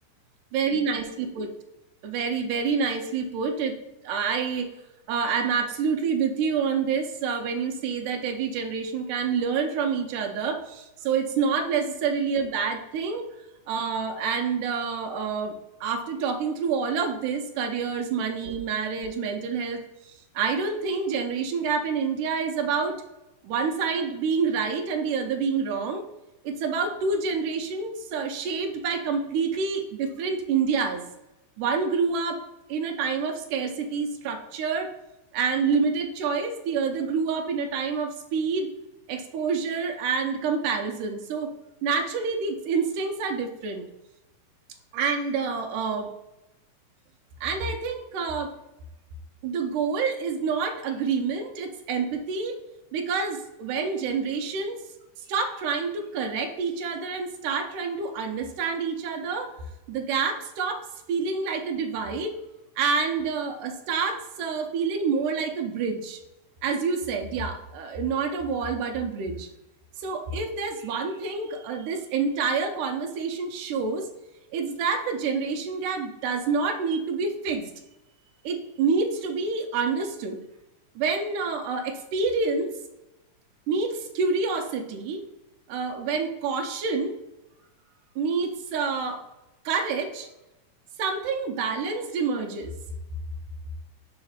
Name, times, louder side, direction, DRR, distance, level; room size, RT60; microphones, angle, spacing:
voice 1, 0.5-1.5 2.0-3.8 4.0-4.7 5.1-13.3 13.7-15.5 15.8-23.0 23.4-26.0 26.4-31.0 31.6-32.4 32.7-34.9 35.3-38.7 39.1-41.5 41.8-43.8 44.9-46.1 47.4-48.5 49.4-52.6 52.9-54.8 55.3-59.5 59.9-62.3 62.8-66.2 66.6-69.5 70.0-74.1 74.5-77.7 78.4-80.4 81.0-82.8 83.7-85.2 85.7-87.2 88.2-89.2 89.7-90.3 91.0-92.7, right 5 dB, 85° right, 5 dB, 2.3 m, -27 dB
5.7 x 4.3 x 5.6 m, 0.95 s
omnidirectional pair, 3.6 m